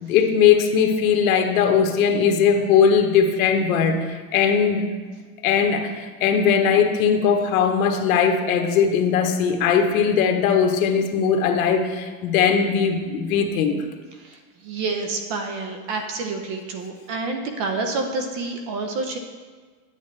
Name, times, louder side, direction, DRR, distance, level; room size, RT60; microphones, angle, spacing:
voice 1, 0.0-4.9 5.4-13.8, left 7 dB, 75° left, 4 dB, 1.2 m, -19 dB
voice 2, 14.2-19.2, right 3 dB, 45° right, 5 dB, 0.9 m, -28 dB
9.3 x 8.4 x 3.3 m, 1.4 s
supercardioid pair, 155°, 42 cm